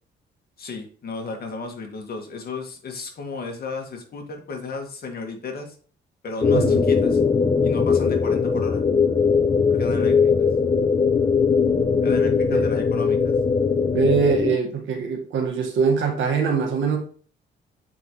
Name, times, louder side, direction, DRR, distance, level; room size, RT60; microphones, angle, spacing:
voice 1, 0.6-5.8 6.2-7.2 7.6-8.8 9.7-10.5 12.0-13.3, left 4 dB, 50° left, 3 dB, 1.9 m, -34 dB
sound 1, 6.4-14.6, left 5 dB, 20° left, 0.6 m, -20 dB
voice 2, 6.5-6.8 12.5-12.7 13.9-17.0, right 6 dB, 75° right, 3 dB, 1.7 m, -23 dB
7.4 x 5.1 x 3.1 m, 0.43 s
cardioid pair, 90°, 20 cm